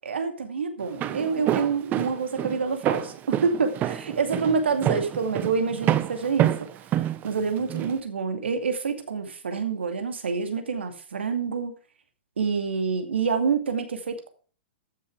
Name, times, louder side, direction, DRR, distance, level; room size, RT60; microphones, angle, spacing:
voice 1, 0.0-6.5 6.9-11.7 12.4-14.3, right 5 dB, 85° right, 7 dB, 2.5 m, -27 dB
Walk footsteps, 0.8-8.0, right 12 dB, 30° right, 1.0 m, -27 dB
14.0 x 7.0 x 5.0 m, 0.39 s
hypercardioid pair, 120°, 6 cm